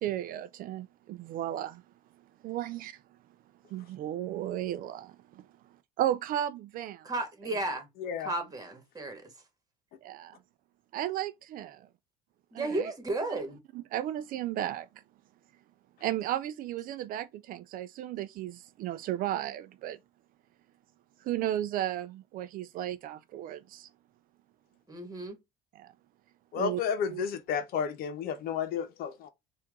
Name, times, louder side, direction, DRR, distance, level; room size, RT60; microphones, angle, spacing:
voice 1, 0.0-1.8 2.4-3.0 3.7-5.1 6.0-7.1 10.0-10.4 10.9-11.8 12.5-12.9 13.3-13.4 13.7-14.9 16.0-20.0 21.2-23.9 25.8-25.9 26.6-26.8 27.1-27.2, right 12 dB, 55° right, 0.4 m, -34 dB
voice 2, 7.0-7.9 8.2-9.3 12.5-13.6 24.9-25.4, right 2 dB, 20° right, 1.7 m, -34 dB
voice 3, 26.5-29.3, left 7 dB, 60° left, 0.9 m, -32 dB
4.5 x 2.6 x 3.6 m
supercardioid pair, 90°, 17 cm